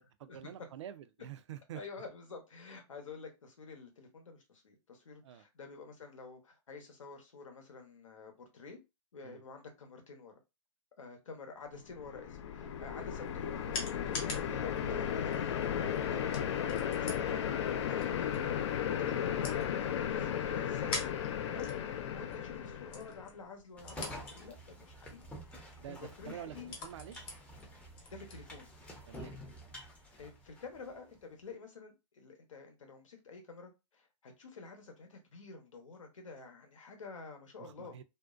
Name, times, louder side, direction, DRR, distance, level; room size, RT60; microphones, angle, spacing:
voice 1, 0.0-1.8 5.2-5.4 9.2-9.4 17.0-17.2 19.1-19.2 21.5-21.6 25.8-27.3 29.1-29.3 37.6-38.0, right 11 dB, 65° right, 0.4 m, -48 dB
voice 2, 1.7-8.8 9.1-10.3 11.0-18.5 18.8-21.1 21.5-21.7 22.0-25.3 25.5-26.7 28.1-28.7 30.2-38.0, left 4 dB, 85° left, 0.9 m, -49 dB
sound 1, 11.9-23.3, left 9 dB, 65° left, 0.4 m, -35 dB
sound 2, 12.9-29.3, left 3 dB, 30° left, 0.9 m, -48 dB
sound 3, 23.8-31.0, equal, 5° left, 0.5 m, -49 dB
2.5 x 2.1 x 2.3 m
hypercardioid pair, 130°, 16 cm